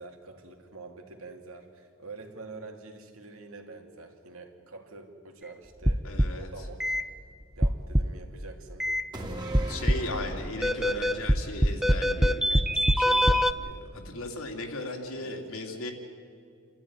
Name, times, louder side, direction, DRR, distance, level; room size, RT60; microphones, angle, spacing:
voice 1, 0.0-7.0 7.6-8.8 15.1-15.4, right 3 dB, 70° right, 3 dB, 2.7 m, -46 dB
sound 1, 5.9-6.4 6.8-7.0 7.6-8.2 8.8-9.0 9.5-10.1 10.6-13.5, equal, ahead, 0.5 m, -23 dB
voice 2, 6.0-6.5 9.7-15.9, left 2 dB, 70° left, 2 dB, 2.9 m, -37 dB
sound 2, 9.1-12.7 13.0-13.1, right 1 dB, 20° right, 2.6 m, -39 dB
29.0 x 13.5 x 9.7 m, 2.3 s
head